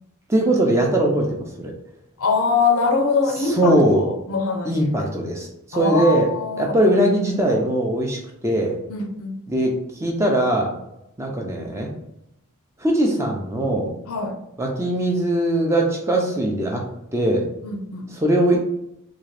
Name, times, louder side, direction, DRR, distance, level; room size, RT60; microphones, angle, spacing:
voice 1, 0.3-1.7 3.4-4.0 4.6-6.3 6.6-8.8 9.5-10.8 11.2-11.9 12.8-13.9 14.6-16.8 17.1-17.5 18.1-18.6, right 1 dB, 15° right, 0 dB, 0.6 m, -20 dB
voice 2, 2.2-5.1 5.7-6.8 8.9-9.3 14.1-14.4 17.6-18.1, left 4 dB, 80° left, 3 dB, 0.6 m, -23 dB
3.6 x 2.4 x 3.3 m, 0.81 s
head